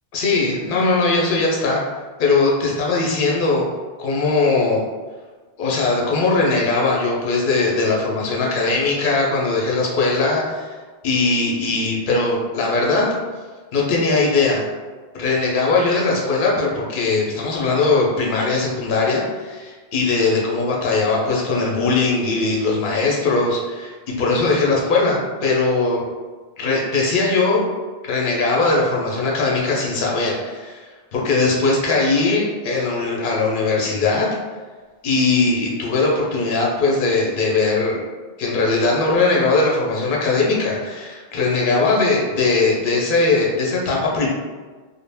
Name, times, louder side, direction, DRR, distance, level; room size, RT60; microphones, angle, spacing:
voice 1, 0.1-1.8 2.2-3.7 4.0-4.8 5.6-10.7 11.0-13.1 13.7-14.7 15.1-26.0 26.6-27.6 28.0-30.9 31.1-34.3 35.0-38.0 38.4-44.3, left 3 dB, 60° left, -2 dB, 0.8 m, -20 dB
2.4 x 2.1 x 3.3 m, 1.4 s
omnidirectional pair, 1.0 m